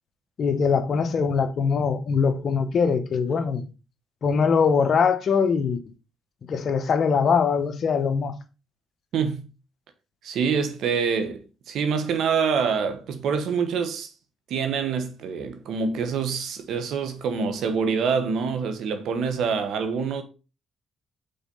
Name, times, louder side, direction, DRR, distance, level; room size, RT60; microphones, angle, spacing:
voice 1, 0.4-3.6 4.2-5.8 6.5-8.3, left 6 dB, 55° left, 1.1 m, -22 dB
voice 2, 10.2-11.4 11.7-14.1 14.5-20.2, right 6 dB, 75° right, 1.3 m, -26 dB
5.6 x 4.2 x 5.5 m
cardioid pair, 90°, 0 cm